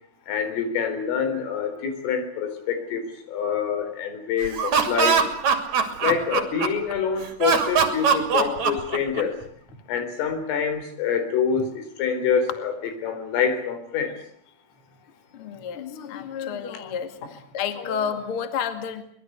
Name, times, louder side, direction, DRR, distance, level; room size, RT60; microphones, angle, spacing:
voice 1, 0.3-5.2 6.0-9.3 9.9-12.7 13.0-14.1, left 6 dB, 85° left, 8 dB, 6.6 m, -26 dB
Laughter, 4.4-6.9 7.4-9.4, right 6 dB, 40° right, 3.3 m, -21 dB
voice 2, 5.8-6.2 15.3-19.0, left 7 dB, 40° left, 8 dB, 2.0 m, -31 dB
24.5 x 21.5 x 8.1 m, 0.63 s
omnidirectional pair, 5.7 m